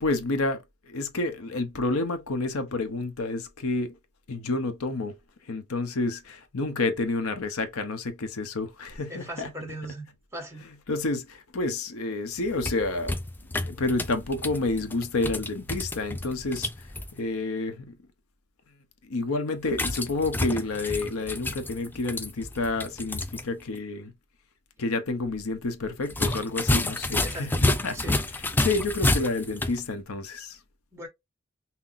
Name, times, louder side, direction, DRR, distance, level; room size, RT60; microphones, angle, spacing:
voice 1, 0.0-4.0 4.3-5.1 5.4-9.5 10.7-13.1 13.6-18.0 19.0-24.1 24.8-30.6, left 2 dB, 75° left, 0.8 m, -29 dB
voice 2, 9.1-10.1 10.3-10.6 27.2-27.6 27.9-28.1 30.9-31.1, right 1 dB, 15° right, 1.4 m, -38 dB
sound 1, 12.4-17.1 19.7-23.4 23.7-23.8 26.1-29.8, left 2 dB, 10° left, 0.4 m, -29 dB
5.7 x 2.1 x 2.6 m
head